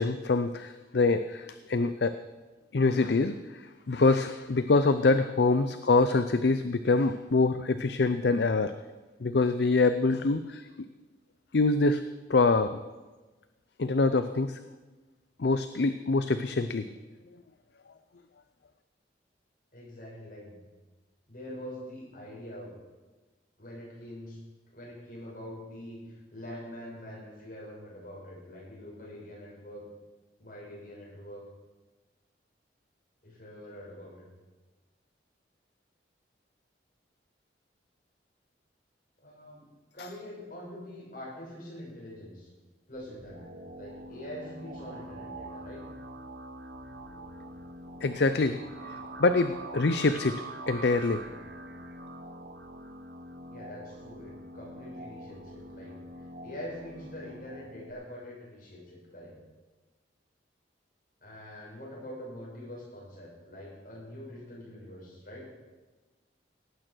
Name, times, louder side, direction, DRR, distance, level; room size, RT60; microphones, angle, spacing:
voice 1, 0.0-2.1 2.7-8.7 9.2-10.6 11.5-12.0 12.3-12.8 13.8-14.6 15.4-16.9 48.0-48.6 48.8-51.2, left 3 dB, 65° left, 10 dB, 0.5 m, -25 dB
voice 2, 19.7-20.6 21.3-22.7 23.6-24.4 24.7-29.9 30.4-31.4 33.2-34.3 39.2-42.5 42.9-45.8 53.5-59.4 61.2-65.5, left 1 dB, 45° left, -4 dB, 6.3 m, -44 dB
sound 1, 42.9-57.9, right 1 dB, 65° right, 1.2 m, -44 dB
18.0 x 9.0 x 6.2 m, 1.2 s
head